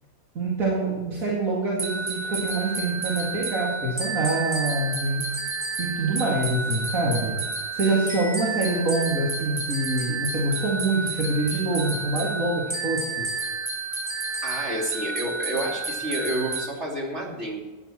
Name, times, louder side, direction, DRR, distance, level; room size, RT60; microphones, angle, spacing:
voice 1, 0.3-5.2 5.8-7.4 7.7-13.3, right 2 dB, 75° right, -5 dB, 2.7 m, -25 dB
sound 1, 1.8-16.7, right 3 dB, 20° right, 2.0 m, -31 dB
voice 2, 14.4-17.6, right 1 dB, 50° right, -3 dB, 3.4 m, -29 dB
14.5 x 10.5 x 4.4 m, 1.3 s
omnidirectional pair, 1.5 m